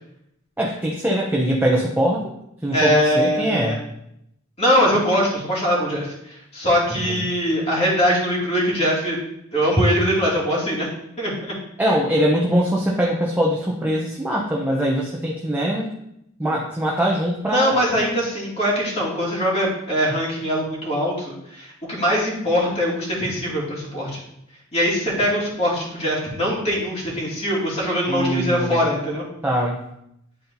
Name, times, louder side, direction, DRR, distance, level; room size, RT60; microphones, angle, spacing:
voice 1, 0.6-2.2 2.6-3.8 6.9-7.2 11.8-15.9 16.4-17.8 28.0-28.9 29.4-29.8, equal, 10° right, -2 dB, 0.7 m, -22 dB
voice 2, 2.7-3.8 4.6-9.2 9.5-10.9 11.2-11.5 17.5-24.2 24.7-29.2, equal, 30° left, -5 dB, 2.4 m, -22 dB
10.5 x 4.2 x 2.7 m, 0.79 s
head